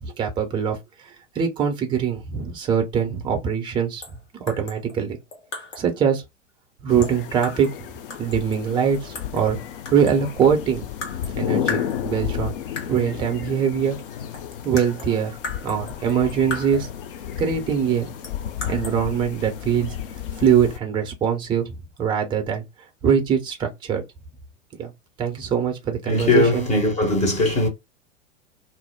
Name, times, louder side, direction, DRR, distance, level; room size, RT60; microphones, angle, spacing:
voice 1, 0.0-0.8 1.3-4.0 4.3-5.2 5.8-6.2 6.8-7.7 8.2-9.6 9.9-10.9 11.4-12.5 12.9-14.0 14.6-15.4 15.6-16.9 17.4-18.1 18.7-20.0 20.4-22.6 23.0-24.0 24.8-24.9 25.2-26.7, right 7 dB, 15° right, 0.5 m, -22 dB
sound 1, 4.0-4.2 4.5-5.9 7.0-7.8 8.1-9.5 9.9-10.4 11.0-11.4 11.7-12.4 12.8-13.1 14.0-14.1 14.3-17.0 18.2-19.0, left 3 dB, 65° left, 1.3 m, -36 dB
sound 2, 6.9-20.8, left 9 dB, 45° left, 0.4 m, -32 dB
voice 2, 26.1-27.7, left 2 dB, 20° left, 0.7 m, -20 dB
2.5 x 2.0 x 3.2 m
figure-of-eight pair, 95°, 39 cm